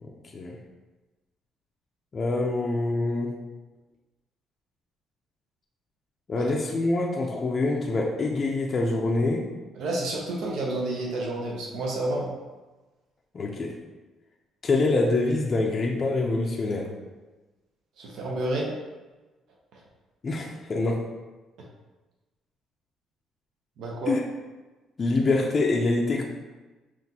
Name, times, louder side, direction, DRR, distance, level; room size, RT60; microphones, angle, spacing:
voice 1, 0.0-0.6 2.1-3.4 6.3-9.5 13.3-13.8 14.6-16.9 20.2-21.1 24.1-24.2 25.0-26.2, left 2 dB, 35° left, 0 dB, 0.4 m, -25 dB
voice 2, 9.7-12.3 18.0-18.7 19.7-19.8 23.8-24.2, right 2 dB, 75° right, -2 dB, 0.8 m, -30 dB
5.9 x 2.5 x 2.8 m, 1.2 s
cardioid pair, 110°, 0 cm